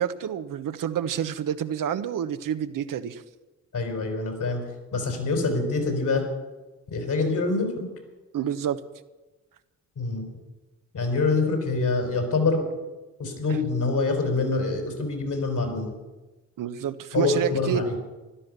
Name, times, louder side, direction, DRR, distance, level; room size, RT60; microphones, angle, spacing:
voice 1, 0.0-3.2 8.3-8.8 13.5-13.6 16.6-17.8, right 9 dB, 70° right, 10 dB, 1.1 m, -28 dB
voice 2, 3.7-4.6 4.9-6.2 6.9-7.9 10.0-10.3 10.9-12.6 13.2-15.9 17.1-17.9, left 3 dB, 65° left, 4 dB, 5.3 m, -25 dB
15.5 x 12.0 x 6.8 m, 1.1 s
supercardioid pair, 50°, 34 cm